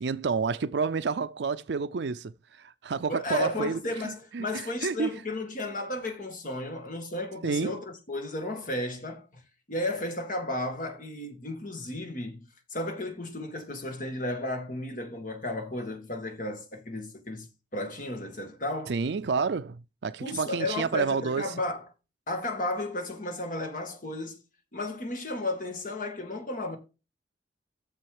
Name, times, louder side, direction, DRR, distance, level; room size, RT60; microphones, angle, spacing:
voice 1, 0.0-5.1 7.4-7.8 18.9-21.5, right 5 dB, 70° right, 0.5 m, -30 dB
voice 2, 3.1-9.4 9.7-17.5 17.7-19.0 20.2-21.9 22.3-24.4 24.7-26.8, left 2 dB, 45° left, 2.0 m, -34 dB
7.4 x 7.0 x 4.9 m
head